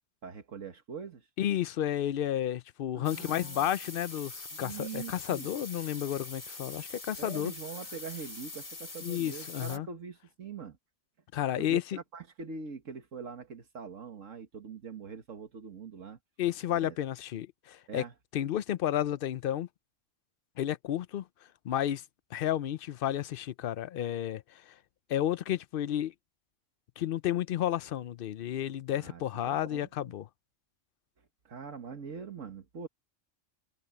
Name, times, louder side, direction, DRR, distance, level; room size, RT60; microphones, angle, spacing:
voice 1, 0.2-1.3 2.9-3.7 4.5-5.5 7.2-10.8 11.6-16.2 16.7-17.0 17.9-18.1 28.9-29.9 31.5-32.9, right 5 dB, 80° right, 1.9 m, -43 dB
voice 2, 1.4-7.5 9.0-9.9 11.3-11.8 16.4-18.0 18.3-19.7 20.6-21.2 21.6-22.0 22.3-24.4 25.1-26.1 27.0-30.3, left 11 dB, 60° left, 0.6 m, -31 dB
sound 1, 3.0-9.8, left 3 dB, 45° left, 2.8 m, -43 dB
omnidirectional pair, 1.3 m